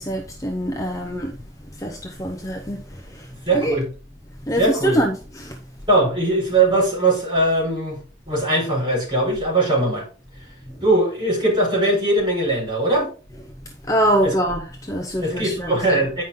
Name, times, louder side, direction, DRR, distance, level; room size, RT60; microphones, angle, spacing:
voice 1, 0.0-1.3 1.8-3.3 3.5-3.8 4.5-5.6 13.9-16.0, equal, 15° left, 0.8 m, -24 dB
voice 2, 3.4-3.9 4.6-5.0 5.9-8.0 8.3-10.1 10.8-13.1 14.2-14.3 15.2-16.2, right 2 dB, 25° right, 5.1 m, -20 dB
9.5 x 5.6 x 3.7 m
head